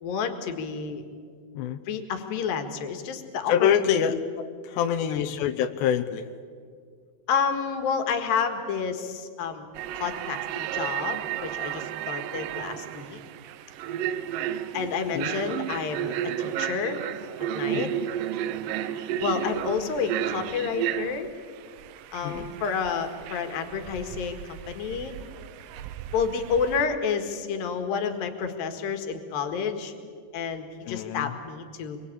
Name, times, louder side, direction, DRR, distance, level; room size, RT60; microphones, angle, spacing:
voice 1, 0.0-1.0 1.9-4.0 4.9-5.3 7.3-9.7 9.9-13.2 14.7-17.0 17.5-17.9 19.2-21.3 22.1-25.1 26.1-29.9 30.3-32.0, left 6 dB, 65° left, 7 dB, 3.3 m, -30 dB
voice 2, 3.5-6.3 15.1-15.3 17.7-17.9 22.2-22.5 30.8-31.3, left 9 dB, 90° left, 8 dB, 3.0 m, -26 dB
sound 1, 9.7-26.9, right 11 dB, 80° right, 2.0 m, -33 dB
25.5 x 23.0 x 8.6 m, 2.1 s
omnidirectional pair, 4.7 m